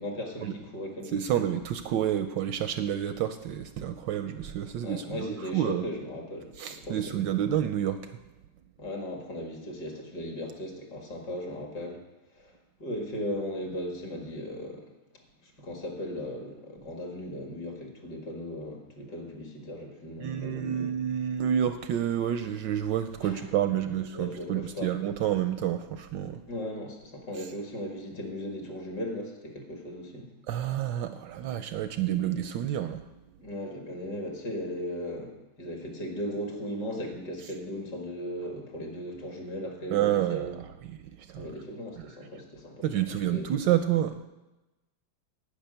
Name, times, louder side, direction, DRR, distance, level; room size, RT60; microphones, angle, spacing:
voice 1, 0.0-1.3 4.8-7.2 8.8-12.0 12.3-12.5 12.8-14.9 15.6-20.9 23.2-23.4 24.1-24.9 26.5-30.3 33.4-40.6 41.4-42.8 43.3-43.4, equal, 55° left, 1 dB, 2.5 m, -37 dB
voice 2, 1.1-5.9 6.6-8.1 20.2-26.5 30.5-33.1 39.9-41.5 42.8-44.3, right 10 dB, 75° right, 9 dB, 1.1 m, -29 dB
10.0 x 6.2 x 8.9 m, 1.0 s
omnidirectional pair, 2.3 m